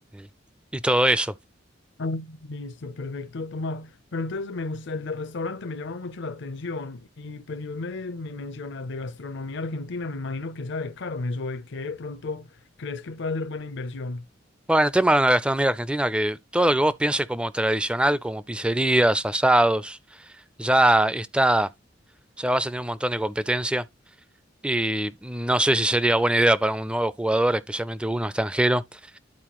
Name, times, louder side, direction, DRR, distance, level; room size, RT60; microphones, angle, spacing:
voice 1, 0.7-1.3 14.7-20.0 20.6-21.7 22.4-23.8 24.6-29.0, right 1 dB, 5° right, 0.4 m, -22 dB
voice 2, 2.0-14.2, left 3 dB, 65° left, 0.6 m, -33 dB
12.0 x 4.4 x 3.0 m
head